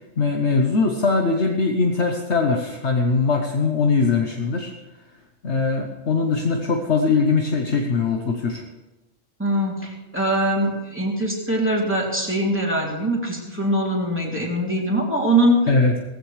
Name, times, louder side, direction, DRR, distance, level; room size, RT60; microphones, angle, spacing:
voice 1, 0.2-4.7 5.4-8.6 15.7-15.9, left 4 dB, 60° left, 3 dB, 1.3 m, -21 dB
voice 2, 9.4-15.6, right 1 dB, 10° right, -3 dB, 3.0 m, -22 dB
17.5 x 15.0 x 3.3 m, 1.1 s
omnidirectional pair, 1.3 m